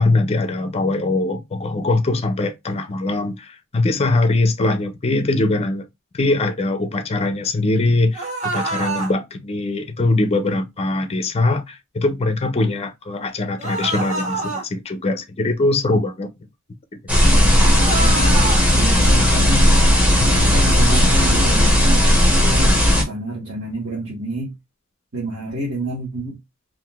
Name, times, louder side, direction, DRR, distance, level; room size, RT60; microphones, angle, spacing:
voice 1, 0.0-5.8 6.1-16.3 20.2-20.5, left 2 dB, 30° left, 0.4 m, -21 dB
sound 1, 8.1-9.1 13.6-14.6 17.7-18.6, right 3 dB, 35° right, 1.4 m, -26 dB
sound 2, 17.1-23.0, equal, 5° right, 0.8 m, -15 dB
voice 2, 17.3-18.3 18.8-19.7 20.3-24.5 25.1-26.4, right 1 dB, 60° right, 1.3 m, -29 dB
3.7 x 2.5 x 2.2 m
head